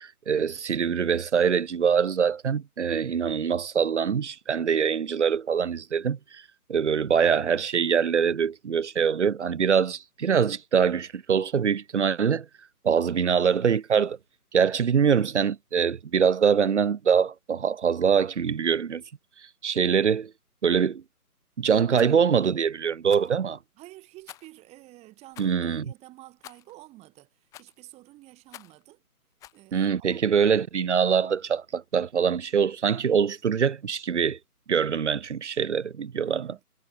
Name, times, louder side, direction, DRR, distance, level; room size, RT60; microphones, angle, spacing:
voice 1, 0.0-6.4 6.7-12.5 12.8-14.2 14.5-19.0 19.6-20.3 20.6-21.0 21.6-23.6 25.4-25.8 29.7-34.4 34.7-36.5, right 7 dB, 50° right, 0.5 m, -24 dB
Rattle, 21.9-22.1 23.1-23.4 24.3-24.6 25.3-25.6 26.4-26.7 27.5-27.8 28.5-28.8 29.4-29.6, left 14 dB, 5° left, 1.3 m, -48 dB
voice 2, 23.8-29.0 29.5-30.2 36.2-36.6, right 18 dB, 15° right, 4.7 m, -50 dB
figure-of-eight pair, 150°, 46 cm